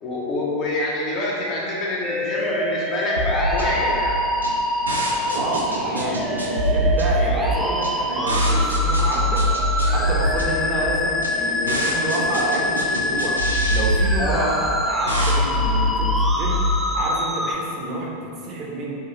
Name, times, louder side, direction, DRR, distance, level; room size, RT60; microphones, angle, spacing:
voice 1, 0.0-4.2 14.2-14.5, left 1 dB, 35° left, -5 dB, 0.9 m, -26 dB
sound 1, 2.0-17.6, left 1 dB, ahead, 0.3 m, -25 dB
sound 2, 3.2-16.8, equal, 80° right, 0.5 m, -24 dB
voice 2, 5.3-9.5 9.9-13.4 13.7-16.7 16.9-18.9, right 2 dB, 35° right, -3 dB, 0.7 m, -28 dB
sound 3, 6.2-14.0, left 2 dB, 60° left, 0.7 m, -36 dB
6.0 x 2.3 x 2.9 m, 2.5 s
figure-of-eight pair, 90°, 0 cm